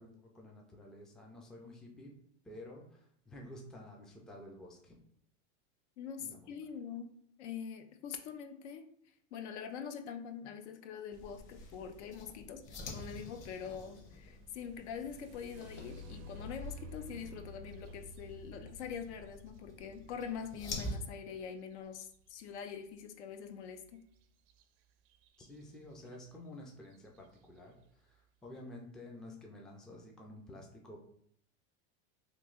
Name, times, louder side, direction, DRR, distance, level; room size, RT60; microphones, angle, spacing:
voice 1, 0.0-2.1 2.4-5.0 6.2-6.5 25.4-31.0, left 1 dB, ahead, 0 dB, 0.3 m, -51 dB
voice 2, 6.0-8.8 9.3-24.1, left 7 dB, 80° left, 8 dB, 0.6 m, -44 dB
Rolling Globe, 11.1-21.0, left 1 dB, 35° left, 0.9 m, -48 dB
sound 1, 14.7-22.4 24.5-24.6 25.1-25.6 26.2-26.3 26.8-27.2, left 1 dB, 55° right, 0.5 m, -52 dB
3.1 x 2.7 x 3.7 m, 0.65 s
supercardioid pair, 130°, 34 cm